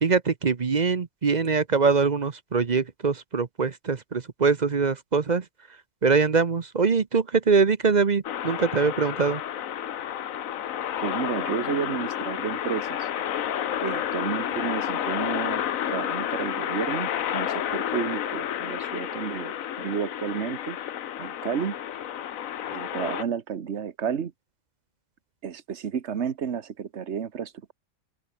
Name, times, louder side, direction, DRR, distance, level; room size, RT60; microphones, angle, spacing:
voice 1, 0.0-5.4 6.0-9.4, right 5 dB, 35° right, 0.9 m, -23 dB
sound 1, 8.2-23.2, left 10 dB, 75° left, 1.3 m, -30 dB
voice 2, 11.0-13.1 13.8-20.8 21.2-21.8 22.7-24.3 25.4-27.5, right 7 dB, 55° right, 1.5 m, -31 dB
open air
omnidirectional pair, 1.4 m